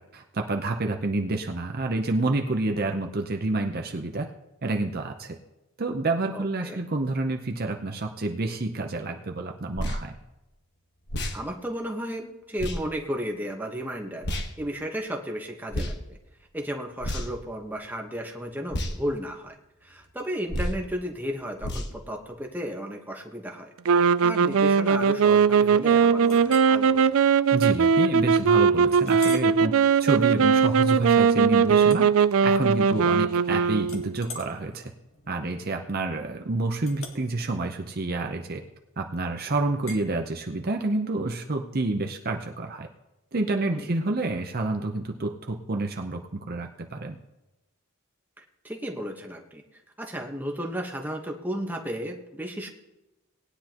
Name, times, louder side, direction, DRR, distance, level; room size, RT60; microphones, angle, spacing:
voice 1, 0.0-4.3 4.6-5.4 5.8-10.2 27.5-29.7 30.0-32.1 32.4-34.8 35.3-38.6 39.0-42.9 43.3-47.2, right 2 dB, 45° right, 3 dB, 0.7 m, -28 dB
voice 2, 6.3-6.8 11.3-14.3 14.6-16.2 16.5-19.5 19.8-23.7 24.2-27.0 43.7-43.9 48.4-49.6 50.0-52.7, equal, 10° right, 1 dB, 1.2 m, -34 dB
sound 1, 9.7-10.0 11.1-11.4 12.6-12.8 14.2-14.5 15.7-16.0 17.0-17.4 18.7-18.9 20.5-20.8 21.6-21.9, equal, 50° left, 1.3 m, -29 dB
sound 2, 23.8-34.3, right 6 dB, 70° right, 0.4 m, -20 dB
Chink clink, 26.3-26.7 27.3-27.4 27.9-28.0 28.9-29.6 30.1-30.4 31.8-32.8 33.1-33.5 33.8-38.9 39.9-40.1, left 4 dB, 65° left, 1.7 m, -45 dB
19.0 x 10.0 x 3.0 m, 0.98 s
head